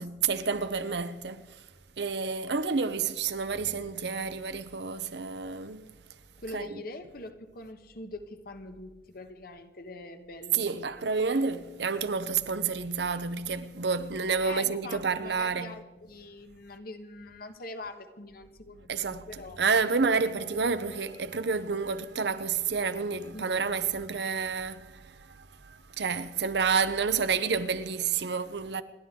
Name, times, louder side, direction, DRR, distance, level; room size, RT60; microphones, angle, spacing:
voice 1, 0.0-1.6 2.0-5.8 6.5-6.7 10.5-15.7 18.9-19.3 19.6-28.8, right 5 dB, 65° right, 0.8 m, -29 dB
voice 2, 6.4-10.9 14.4-19.6 23.3-23.7, left 2 dB, 55° left, 1.2 m, -43 dB
28.5 x 11.5 x 3.8 m
head